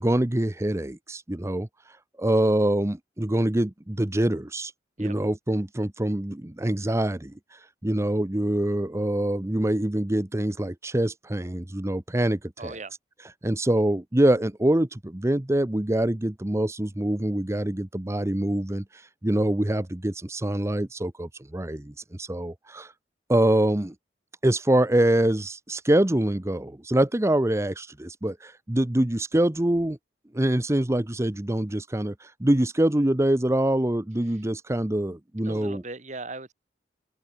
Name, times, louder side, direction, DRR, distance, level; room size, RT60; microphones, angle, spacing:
voice 1, 0.0-4.7 5.0-12.8 13.4-22.9 23.3-23.9 24.4-30.0 30.3-35.8, right 1 dB, 15° right, 0.8 m, -25 dB
voice 2, 12.6-12.9 35.4-36.5, right 3 dB, 40° right, 3.1 m, -38 dB
open air
head